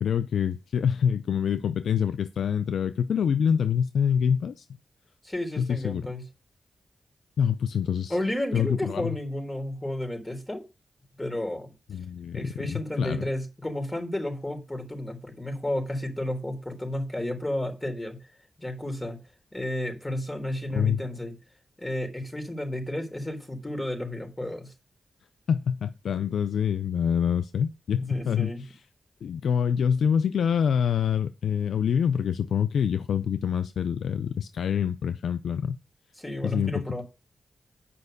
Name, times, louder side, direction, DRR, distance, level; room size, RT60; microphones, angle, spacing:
voice 1, 0.0-4.7 5.6-6.1 7.4-8.2 8.5-9.2 11.9-13.3 20.7-21.0 25.5-28.8 29.2-35.8 36.4-37.0, left 8 dB, 85° left, 0.4 m, -26 dB
voice 2, 5.2-6.2 8.1-10.6 11.2-11.7 12.3-18.2 18.6-19.2 19.5-21.3 21.8-24.7 27.9-28.6 36.2-37.0, left 1 dB, 15° left, 3.7 m, -32 dB
8.5 x 5.4 x 6.5 m
cardioid pair, 55°, 0 cm